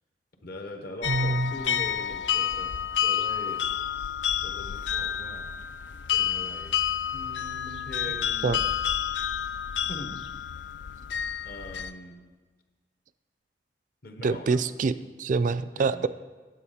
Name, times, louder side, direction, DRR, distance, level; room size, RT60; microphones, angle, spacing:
voice 1, 0.4-2.7 3.0-3.6 4.4-5.5 6.1-6.8 7.1-8.6 9.8-10.3 11.4-12.2 14.0-14.6 15.8-16.1, left 1 dB, 60° left, 5 dB, 1.0 m, -42 dB
sound 1, 1.0-11.9, left 9 dB, 85° left, 0.4 m, -29 dB
voice 2, 1.1-1.8 8.4-8.6 14.2-16.1, right 4 dB, 45° right, 14 dB, 0.3 m, -26 dB
9.8 x 7.7 x 5.0 m, 1.3 s
head